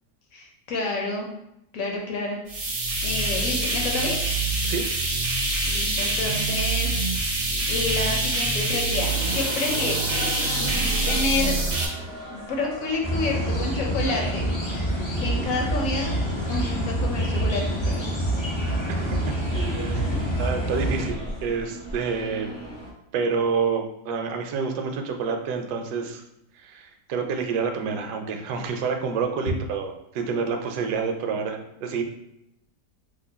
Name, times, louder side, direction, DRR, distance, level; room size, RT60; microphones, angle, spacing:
voice 1, 0.3-1.3 1.7-2.4 3.0-4.1 5.6-7.2 7.7-10.1 11.1-11.5 12.3-14.5 15.2-16.1 16.5-18.1 19.9-20.1, left 3 dB, 60° left, 0 dB, 1.0 m, -29 dB
sound 1, 2.5-11.9, right 2 dB, 55° right, 0.7 m, -25 dB
sound 2, 9.0-22.9, right 1 dB, 20° right, 0.4 m, -37 dB
sound 3, 13.0-21.1, right 1 dB, 45° left, 0.3 m, -26 dB
voice 2, 18.9-20.1 20.4-22.5 23.1-26.2 26.6-32.0, right 5 dB, 75° right, 4 dB, 1.1 m, -28 dB
2.9 x 2.5 x 3.9 m, 0.83 s
omnidirectional pair, 1.8 m